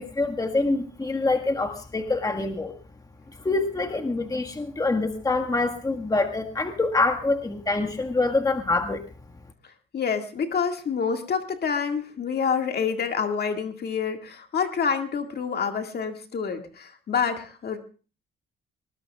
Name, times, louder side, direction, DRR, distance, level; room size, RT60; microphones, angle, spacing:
voice 1, 0.0-2.7 3.4-9.0, left 3 dB, 20° left, 3 dB, 1.6 m, -25 dB
voice 2, 9.6-17.8, left 6 dB, 55° left, 5 dB, 2.0 m, -27 dB
20.0 x 20.0 x 2.4 m, 0.37 s
cardioid pair, 90°, 20 cm